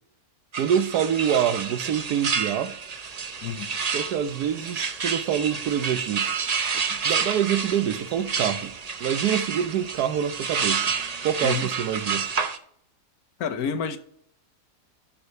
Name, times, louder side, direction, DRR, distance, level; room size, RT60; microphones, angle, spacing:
sound 1, 0.5-12.6, right 5 dB, 50° right, 0.4 m, -29 dB
voice 1, 0.6-2.8 3.9-6.3 6.9-8.7 9.0-10.9 11.2-12.3, right 9 dB, 75° right, 1.3 m, -26 dB
voice 2, 13.4-14.0, left 6 dB, 70° left, 1.3 m, -29 dB
11.5 x 5.0 x 5.4 m
omnidirectional pair, 1.7 m